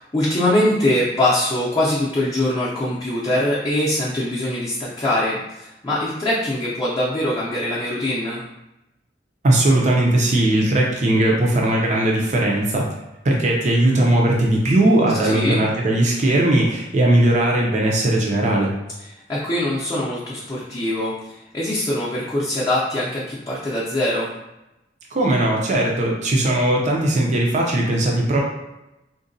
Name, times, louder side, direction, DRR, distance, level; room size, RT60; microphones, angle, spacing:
voice 1, 0.0-8.4 15.2-15.6 19.0-24.3, left 1 dB, 20° left, -8 dB, 0.5 m, -23 dB
voice 2, 9.4-12.8 13.2-18.7 25.1-28.5, right 1 dB, 40° right, -1 dB, 0.5 m, -18 dB
3.8 x 2.2 x 2.6 m, 0.95 s
head